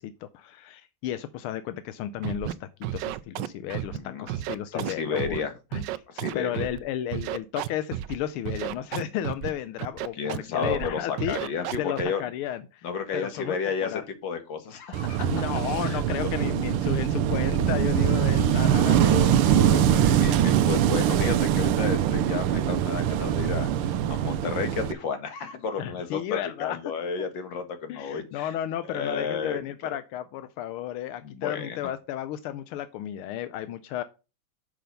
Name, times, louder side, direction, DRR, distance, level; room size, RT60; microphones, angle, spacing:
voice 1, 0.0-5.4 5.7-5.8 6.3-11.4 11.8-12.9 13.1-14.0 15.2-19.4 25.8-26.8 27.9-34.0, left 11 dB, 85° left, 12 dB, 1.5 m, -33 dB
Scratching (performance technique), 2.2-2.5 2.8-4.0 4.3-5.4 5.7-6.8 7.1-8.2 8.5-9.5 9.8-10.4 10.6-10.9 11.2-12.0, right 13 dB, 75° right, 1.1 m, -32 dB
voice 2, 3.9-4.3 4.7-5.5 6.1-6.7 10.1-12.2 12.8-15.3 15.8-16.3 18.3-26.2 26.6-28.5 28.9-29.6 31.2-31.8, left 5 dB, 60° left, 8 dB, 2.1 m, -32 dB
Wind / Waves surf, 14.9-24.9, right 10 dB, 90° right, 1.5 m, -23 dB
6.8 x 5.9 x 5.3 m, 0.30 s
omnidirectional pair, 2.3 m